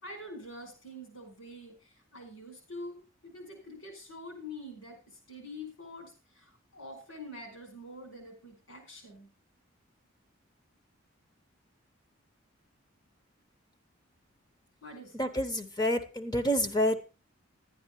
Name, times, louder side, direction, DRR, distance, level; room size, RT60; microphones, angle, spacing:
voice 1, 0.0-9.3 14.8-15.3, left 1 dB, 80° left, 4 dB, 5.2 m, -46 dB
voice 2, 15.1-17.0, equal, 20° left, 8 dB, 1.0 m, -28 dB
11.5 x 9.5 x 4.6 m, 0.32 s
head